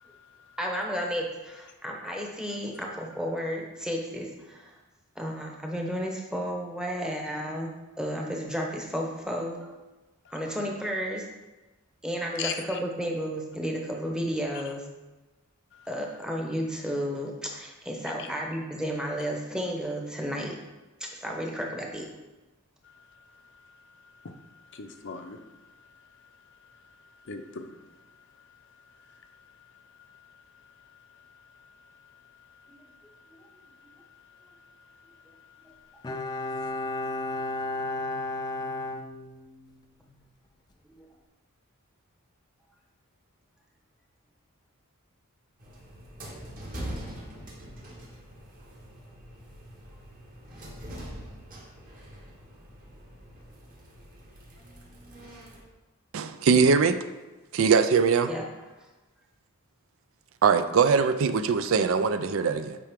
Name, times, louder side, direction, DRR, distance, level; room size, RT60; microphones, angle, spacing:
voice 1, 0.0-0.6 10.2-10.3 12.4-12.8 15.7-15.9 18.2-18.3 22.8-38.0, left 6 dB, 55° left, 6 dB, 0.6 m, -46 dB
voice 2, 0.6-4.7 5.2-9.7 10.3-11.2 12.0-14.8 15.9-20.6 21.0-22.1 40.9-41.1 58.3-58.5, equal, 5° right, 0 dB, 0.9 m, -32 dB
Bowed string instrument, 36.0-39.8 40.1-40.2, left 2 dB, 20° left, 0.4 m, -33 dB
sound 1, 45.6-55.6, equal, 40° right, 1.5 m, -43 dB
voice 3, 56.1-57.0 57.5-58.3 60.4-62.8, right 5 dB, 65° right, 10 dB, 0.4 m, -22 dB
8.4 x 4.8 x 3.6 m, 1.1 s
head